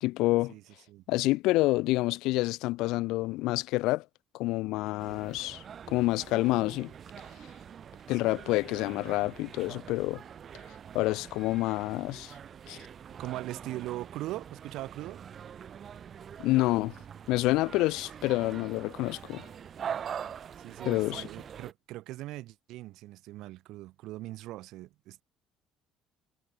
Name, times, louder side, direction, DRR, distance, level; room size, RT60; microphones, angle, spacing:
voice 1, 0.0-0.5 1.1-4.0 4.3-6.9 8.1-10.2 10.9-12.3 12.7-12.8 16.4-17.0 17.3-19.5 20.8-21.3, left 19 dB, 85° left, 0.4 m, -28 dB
sound 1, 5.0-21.7, right 8 dB, 40° right, 4.7 m, -44 dB
voice 2, 13.2-15.2 20.6-25.2, right 17 dB, 75° right, 2.9 m, -40 dB
cardioid pair, 135°, 0 cm